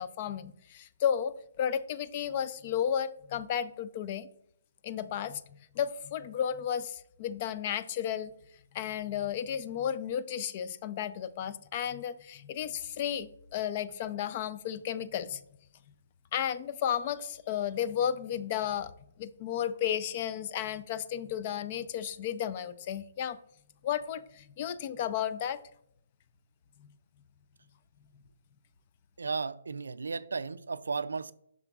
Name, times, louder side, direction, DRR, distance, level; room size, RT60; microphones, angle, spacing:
voice 1, 0.0-4.3 4.8-5.4 5.8-8.3 8.7-15.4 16.3-18.9 19.2-23.4 23.8-25.6, left 9 dB, 40° left, 0.4 m, -33 dB
voice 2, 29.2-31.3, right 4 dB, 85° right, 0.3 m, -34 dB
7.1 x 6.0 x 2.3 m
hypercardioid pair, 150°, 0 cm